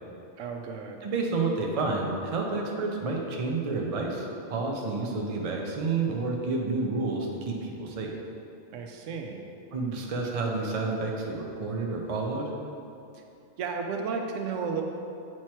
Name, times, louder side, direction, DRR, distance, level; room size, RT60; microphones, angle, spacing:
voice 1, 0.4-1.0 8.7-9.4 13.1-13.2 13.6-14.8, right 5 dB, 85° right, 3 dB, 1.0 m, -33 dB
voice 2, 1.0-8.1 9.7-12.5, right 3 dB, 40° right, 0 dB, 0.6 m, -30 dB
7.2 x 3.1 x 4.4 m, 2.6 s
omnidirectional pair, 1.2 m